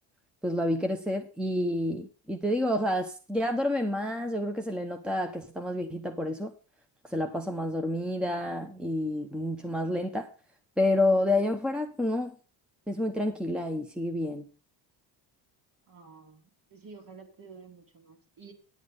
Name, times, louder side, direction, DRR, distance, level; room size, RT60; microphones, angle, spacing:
voice 1, 0.4-6.5 7.1-10.3 10.8-12.3 12.9-14.5, left 1 dB, ahead, 1.0 m, -29 dB
voice 2, 15.9-18.5, right 5 dB, 45° right, 2.9 m, -50 dB
10.0 x 8.5 x 5.3 m
cardioid pair, 110°, 48 cm